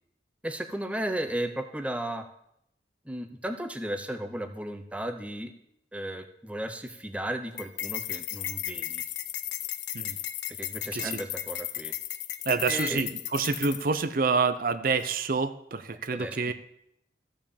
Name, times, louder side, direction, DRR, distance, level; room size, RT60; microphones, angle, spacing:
voice 1, 0.4-2.3 3.1-5.5 5.9-9.0 10.6-11.9 12.7-13.0 16.1-16.5, right 1 dB, 5° right, 7 dB, 0.6 m, -34 dB
sound 1, 7.6-14.0, left 13 dB, 80° left, 0.6 m, -35 dB
voice 2, 10.9-11.2 12.5-16.5, right 4 dB, 50° right, 11 dB, 0.6 m, -27 dB
14.0 x 5.2 x 7.1 m, 0.76 s
head